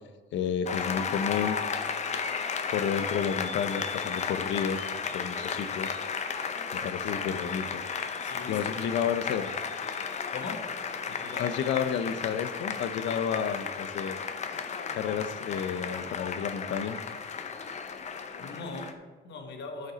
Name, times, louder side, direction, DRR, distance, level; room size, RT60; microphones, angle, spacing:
voice 1, 0.3-1.6 2.7-4.9 5.1-6.0 6.7-7.8 8.5-9.5 11.4-14.2 14.9-17.0, left 7 dB, 85° left, 11 dB, 0.6 m, -31 dB
Applause, 0.7-18.9, left 6 dB, 40° left, 0.7 m, -34 dB
voice 2, 8.2-9.0 10.3-10.7 11.1-11.5 18.4-19.9, left 3 dB, 70° left, 4 dB, 1.3 m, -41 dB
12.0 x 5.2 x 4.0 m, 1.3 s
cardioid pair, 160°, 19 cm